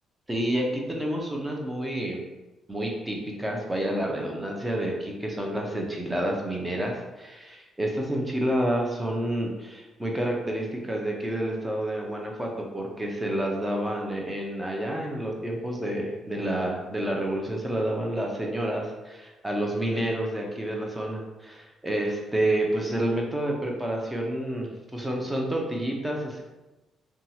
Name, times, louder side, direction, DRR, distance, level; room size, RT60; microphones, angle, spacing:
voice 1, 0.3-2.2 2.7-26.4, right 1 dB, 10° right, 0 dB, 0.6 m, -29 dB
2.8 x 2.3 x 2.8 m, 1.1 s
cardioid pair, 90°, 0 cm